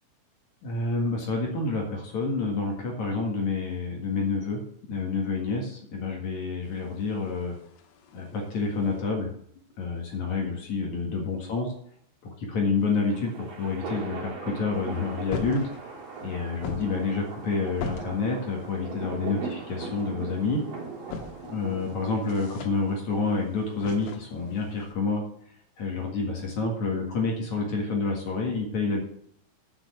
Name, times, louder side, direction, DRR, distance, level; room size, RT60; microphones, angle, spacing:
voice 1, 0.6-4.6 4.9-7.5 8.1-9.3 9.8-11.7 12.2-15.9 16.2-20.6 21.5-25.2 25.8-29.0, left 4 dB, 60° left, 0 dB, 2.0 m, -28 dB
sound 1, 6.6-9.0 14.7-24.9, left 4 dB, 75° left, 3.5 m, -43 dB
sound 2, 12.8-23.3, right 5 dB, 50° right, 3.9 m, -39 dB
8.6 x 6.2 x 8.2 m, 0.68 s
omnidirectional pair, 5.8 m